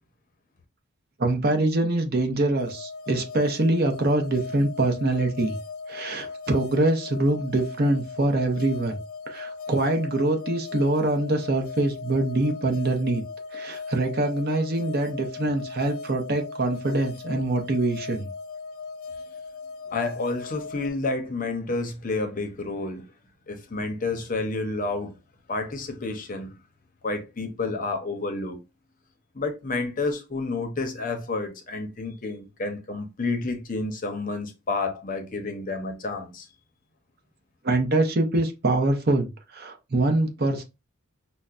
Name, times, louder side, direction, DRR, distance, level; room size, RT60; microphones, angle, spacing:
voice 1, 1.2-5.6 5.9-9.0 9.3-13.2 13.5-18.3 37.6-40.6, right 2 dB, 45° right, 0.7 m, -24 dB
sound 1, 2.6-20.9, left 4 dB, 75° left, 0.3 m, -38 dB
voice 2, 19.9-23.1 23.5-25.1 25.5-26.6 27.0-28.6 29.3-36.5, left 3 dB, 40° left, 0.7 m, -30 dB
5.5 x 2.1 x 2.4 m
head